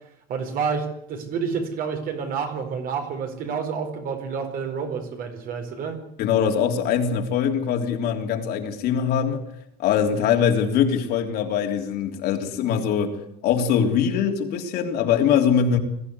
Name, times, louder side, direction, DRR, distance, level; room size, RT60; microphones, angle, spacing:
voice 1, 0.3-6.0, right 6 dB, 45° right, 5 dB, 4.7 m, -29 dB
voice 2, 6.2-9.5 9.8-13.2 13.4-15.8, left 7 dB, 55° left, 3 dB, 3.3 m, -22 dB
22.0 x 14.5 x 9.7 m, 0.74 s
cardioid pair, 155°, 20 cm